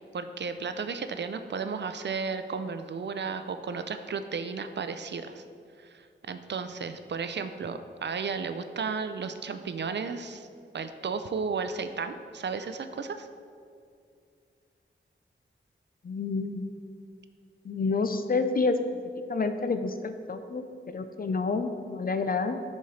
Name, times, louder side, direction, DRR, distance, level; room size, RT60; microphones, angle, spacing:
voice 1, 0.1-5.4 5.8-10.5 10.7-13.3, right 5 dB, 60° right, 9 dB, 0.4 m, -34 dB
voice 2, 16.0-16.7 17.6-18.8 19.3-22.6, left 4 dB, 45° left, 9 dB, 0.4 m, -29 dB
10.5 x 4.2 x 3.2 m, 2.3 s
wide cardioid pair, 80°, 20 cm